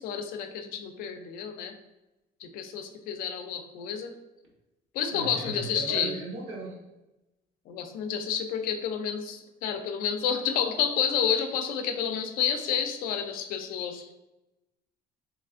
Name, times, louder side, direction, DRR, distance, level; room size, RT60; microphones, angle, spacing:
voice 1, 0.0-1.7 2.4-4.1 4.9-6.1 7.7-14.1, left 7 dB, 65° left, 6 dB, 0.4 m, -30 dB
voice 2, 5.1-6.8, right 2 dB, 75° right, -1 dB, 0.9 m, -37 dB
3.2 x 3.0 x 2.4 m, 0.99 s
cardioid pair, 165°, 16 cm